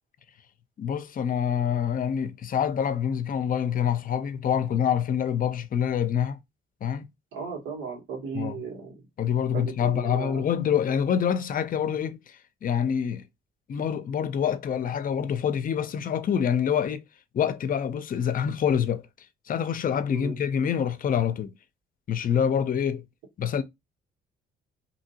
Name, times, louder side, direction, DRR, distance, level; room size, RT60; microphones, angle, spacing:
voice 1, 0.8-6.4 6.8-7.1 8.3-8.6 9.2-13.2 13.7-17.0 17.3-19.0 19.5-21.5 22.1-23.0 23.4-23.6, left 8 dB, 45° left, 0.5 m, -26 dB
voice 2, 7.3-8.9 9.5-10.5 20.1-20.3, right 5 dB, 85° right, 1.5 m, -35 dB
2.8 x 2.8 x 2.7 m
cardioid pair, 90°, 20 cm